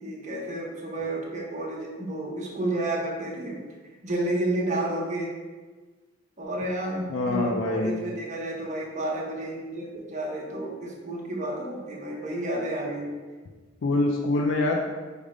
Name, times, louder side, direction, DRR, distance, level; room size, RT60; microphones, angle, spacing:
voice 1, 0.0-3.6 4.0-5.3 6.4-13.1, right 1 dB, 40° right, -3 dB, 0.9 m, -31 dB
voice 2, 7.1-8.0 13.8-14.8, left 2 dB, 75° left, 1 dB, 0.4 m, -25 dB
5.0 x 2.1 x 4.8 m, 1.4 s
head